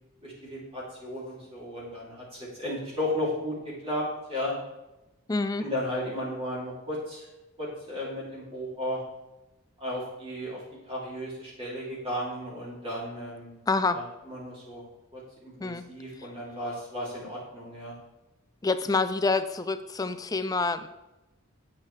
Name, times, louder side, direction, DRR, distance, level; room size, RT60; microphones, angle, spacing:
voice 1, 0.2-4.5 5.6-7.3 7.6-9.0 9.8-10.6 10.9-13.5 13.9-14.8 15.1-17.9, left 1 dB, 25° right, -6 dB, 2.9 m, -34 dB
voice 2, 5.3-5.7 13.7-14.0 15.6-15.8 18.6-20.9, left 3 dB, 15° left, 10 dB, 0.4 m, -27 dB
8.3 x 8.1 x 3.3 m, 1.0 s
head